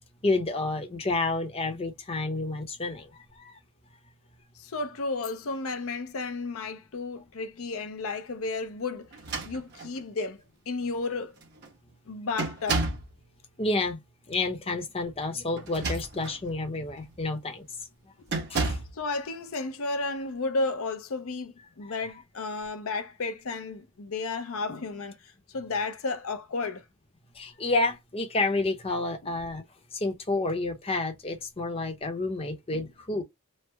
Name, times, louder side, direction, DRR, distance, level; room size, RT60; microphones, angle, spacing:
voice 1, 0.2-3.1 3.4-3.6 13.6-14.0 14.3-17.6 18.5-18.8 27.3-29.6 29.9-33.2, left 2 dB, 25° left, 0.7 m, -29 dB
voice 2, 4.6-9.2 9.4-11.3 12.1-12.8 18.2-26.8 29.2-29.3 32.7-32.9, left 3 dB, 70° left, 0.6 m, -33 dB
sound 1, 9.1-10.0 10.9-11.0 11.4-11.7 12.4-13.1 15.6-16.4 17.0-17.2 18.3-19.0, right 3 dB, 50° right, 1.1 m, -31 dB
3.2 x 2.0 x 3.2 m
head